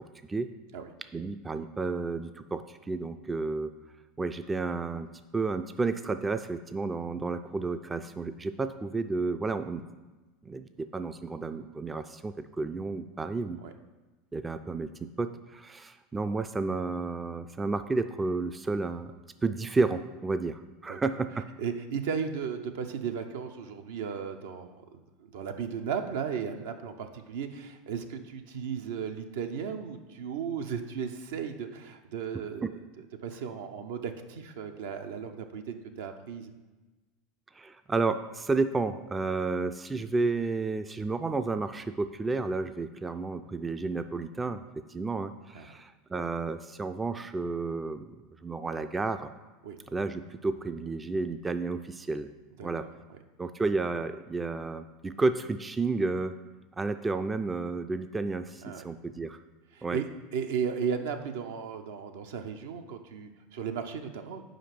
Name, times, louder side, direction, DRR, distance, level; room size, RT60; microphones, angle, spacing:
voice 1, 1.1-3.7 4.2-5.1 5.3-9.9 10.5-13.6 14.3-19.1 19.4-21.3 32.6-32.7 37.5-44.6 44.9-48.1 48.4-49.3 49.9-52.3 52.6-52.8 53.4-56.4 56.8-59.4 59.8-60.0, right 3 dB, 15° right, 9 dB, 0.3 m, -31 dB
voice 2, 21.6-32.7 33.2-36.5 45.5-45.8 49.6-49.8 52.6-53.2 58.6-58.8 59.7-64.4, right 7 dB, 75° right, 6 dB, 0.6 m, -35 dB
5.1 x 5.0 x 5.9 m, 1.2 s
hypercardioid pair, 95°, 0 cm